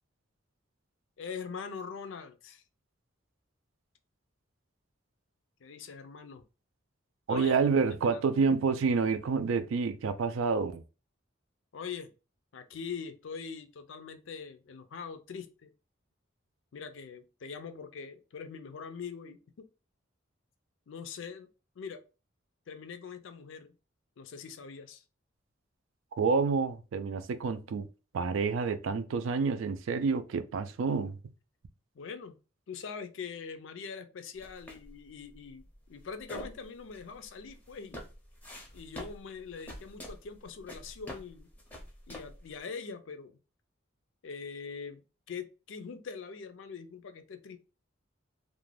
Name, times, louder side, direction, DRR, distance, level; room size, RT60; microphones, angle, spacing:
voice 1, 1.2-2.6 5.6-6.4 7.3-7.5 8.0-8.3 11.7-12.1 12.5-15.7 16.7-19.7 20.9-21.5 21.8-22.0 22.7-23.7 24.2-25.0 31.9-32.4 32.7-38.0 38.7-41.5 42.1-43.4 44.2-47.6, left 5 dB, 70° left, 0.4 m, -43 dB
voice 2, 7.3-10.8 26.2-27.9 28.1-31.2, right 5 dB, 75° right, 0.3 m, -28 dB
sound 1, 34.4-42.6, equal, 10° left, 0.5 m, -47 dB
2.4 x 2.1 x 3.1 m
head